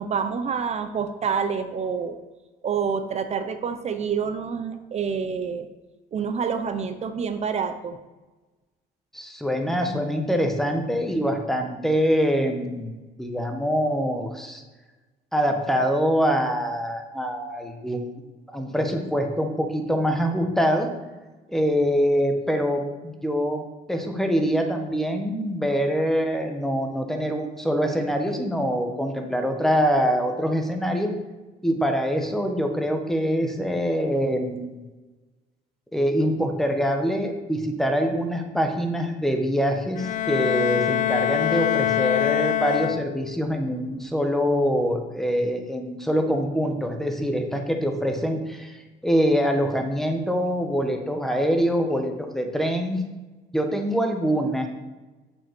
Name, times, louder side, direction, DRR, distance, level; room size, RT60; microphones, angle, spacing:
voice 1, 0.0-2.2 2.6-5.7 6.1-8.0, right 6 dB, 40° right, 8 dB, 0.7 m, -27 dB
voice 2, 9.1-14.6 15.3-18.2 18.5-20.9 21.5-23.6 23.9-31.1 31.6-34.8 35.9-53.0 53.5-54.7, equal, ahead, 4 dB, 1.3 m, -24 dB
Bowed string instrument, 40.0-43.5, left 13 dB, 50° left, 0.4 m, -24 dB
7.4 x 5.4 x 6.8 m, 1.2 s
cardioid pair, 110°, 17 cm